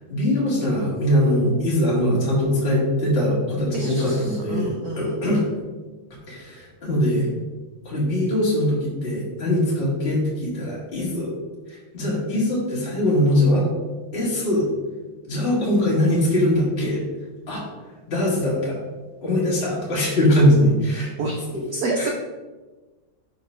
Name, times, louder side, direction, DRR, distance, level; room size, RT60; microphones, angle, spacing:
voice 1, 0.1-4.7 5.0-5.4 6.3-7.3 7.9-11.3 11.7-13.7 14.1-14.7 15.3-17.0 17.5-17.6 18.1-18.8 19.2-21.1 21.5-21.6 22.0-22.1, left 1 dB, 25° left, -6 dB, 1.8 m, -21 dB
voice 2, 3.7-5.2 21.2-21.4 21.7-22.1, right 3 dB, 80° right, 1 dB, 0.8 m, -28 dB
5.1 x 3.9 x 5.4 m, 1.2 s
omnidirectional pair, 2.3 m